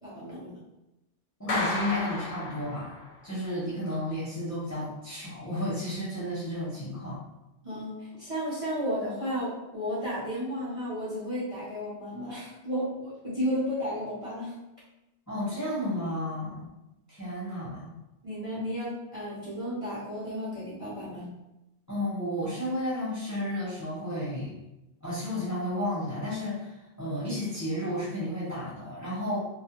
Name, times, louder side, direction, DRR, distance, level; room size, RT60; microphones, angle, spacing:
voice 1, 0.0-0.5 7.6-14.5 18.2-21.3, equal, 35° right, -10 dB, 0.7 m, -33 dB
voice 2, 1.4-7.2 15.3-16.7 17.1-17.9 21.9-24.5 25.0-29.4, left 1 dB, 20° left, -9 dB, 0.7 m, -32 dB
Clapping, 1.5-3.2, left 2 dB, 80° left, 0.9 m, -33 dB
2.3 x 2.1 x 2.9 m, 0.95 s
omnidirectional pair, 1.1 m